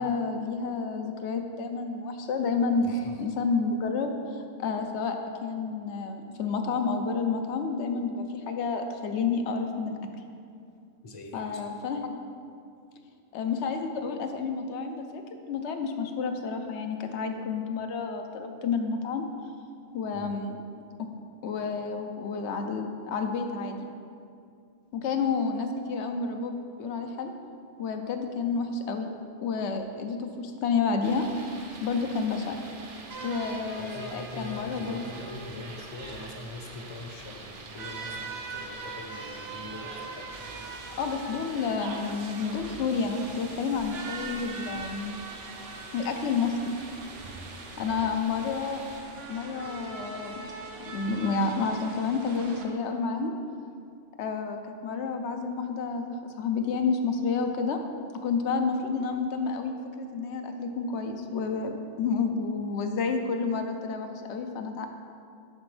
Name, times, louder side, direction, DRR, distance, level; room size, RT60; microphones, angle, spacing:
voice 1, 0.0-9.9 11.3-12.1 13.3-19.3 19.9-20.6 21.4-23.9 24.9-27.3 27.8-29.1 29.4-31.3 31.8-32.6 33.2-35.0 41.0-45.2 45.9-46.8 47.8-48.8 49.3-50.5 50.9-53.3 54.2-57.8 58.2-64.9, left 4 dB, 80° left, 5 dB, 0.9 m, -30 dB
voice 2, 2.8-3.2 11.0-11.7 20.1-20.4 33.8-40.4 47.8-48.2, left 2 dB, 35° left, 2 dB, 0.6 m, -43 dB
sound 1, 31.0-49.0, right 3 dB, 40° right, 0.5 m, -46 dB
sound 2, 33.1-52.6, right 3 dB, 65° right, 1.0 m, -42 dB
7.8 x 6.0 x 3.2 m, 2.4 s
omnidirectional pair, 1.1 m